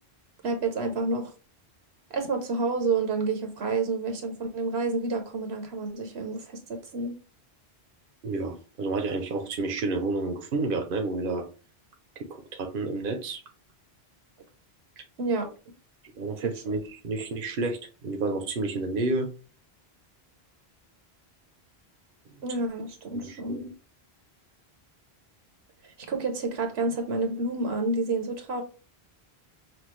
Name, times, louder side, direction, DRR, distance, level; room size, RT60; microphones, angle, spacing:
voice 1, 0.4-1.3 2.1-7.1 15.2-15.5 16.4-16.5 22.4-23.6 26.1-28.6, right 3 dB, 80° right, 4 dB, 1.2 m, -29 dB
voice 2, 8.2-11.4 12.2-13.4 15.0-15.1 16.1-19.3 23.1-23.7, right 3 dB, 60° right, 4 dB, 0.9 m, -30 dB
5.8 x 2.5 x 3.1 m, 0.35 s
omnidirectional pair, 1.1 m